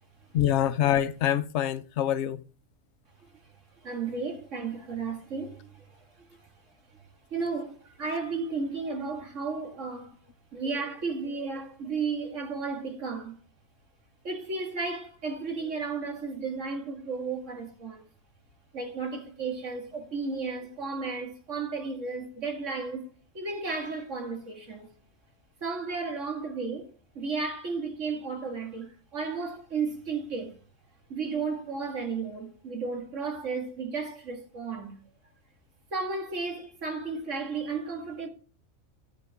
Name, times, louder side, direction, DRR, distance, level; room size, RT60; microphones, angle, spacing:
voice 1, 0.3-2.5, left 11 dB, 65° left, 0.9 m, -25 dB
voice 2, 3.8-5.8 7.3-10.1 10.5-13.4 14.2-18.0 18.7-23.0 23.3-24.9 25.6-26.9 27.2-30.5 31.1-34.9 35.9-38.3, right 4 dB, 70° right, 2.2 m, -33 dB
14.0 x 6.7 x 3.5 m
omnidirectional pair, 1.3 m